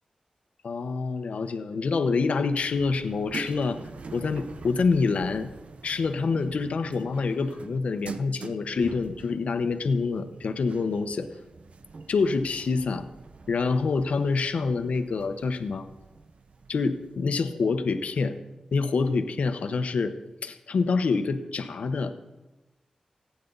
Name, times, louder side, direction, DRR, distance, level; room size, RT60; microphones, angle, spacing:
voice 1, 0.6-3.8 4.1-5.5 5.8-11.3 12.1-13.1 13.5-15.9 16.7-18.4 18.7-20.1 20.4-22.1, left 4 dB, 80° left, 8 dB, 1.1 m, -26 dB
sound 1, 2.6-17.4, right 4 dB, 70° right, 0.8 m, -45 dB
24.5 x 9.5 x 4.1 m, 1.0 s
cardioid pair, 50°, 2 cm